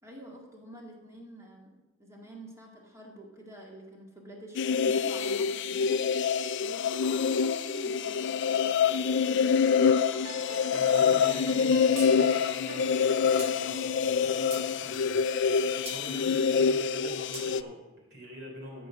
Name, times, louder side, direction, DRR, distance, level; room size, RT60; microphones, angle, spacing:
voice 1, 0.0-9.8, right 1 dB, 15° right, -1 dB, 2.0 m, -47 dB
sound 1, 4.5-17.6, left 6 dB, 55° left, 0.4 m, -26 dB
sound 2, 10.1-15.2, right 5 dB, 85° right, 0.7 m, -47 dB
voice 2, 10.7-18.9, equal, 50° right, -2 dB, 3.7 m, -45 dB
sound 3, 12.0-12.1 12.4-12.5 13.4-13.5 14.1-14.7 15.9-16.0 17.3-17.5, right 2 dB, 30° right, 2.1 m, -40 dB
13.5 x 5.3 x 6.3 m, 1.1 s
head